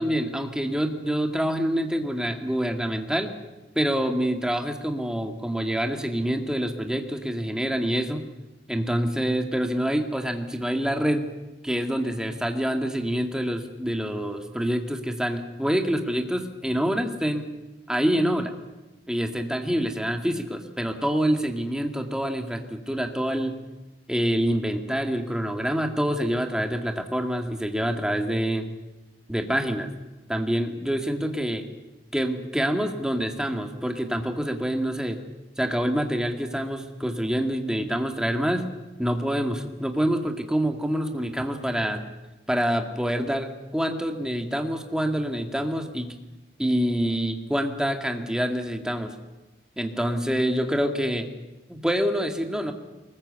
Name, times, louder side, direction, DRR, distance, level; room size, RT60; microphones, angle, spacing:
voice 1, 0.0-3.3 3.8-8.2 8.7-11.2 11.6-17.5 17.9-18.5 19.1-23.6 24.1-28.7 29.3-29.9 30.3-31.7 32.1-35.2 35.6-38.7 39.0-42.0 42.5-46.2 46.6-49.2 49.8-51.3 51.7-52.7, equal, 5° right, 4 dB, 2.1 m, -26 dB
23.5 x 20.5 x 8.2 m, 1.1 s
head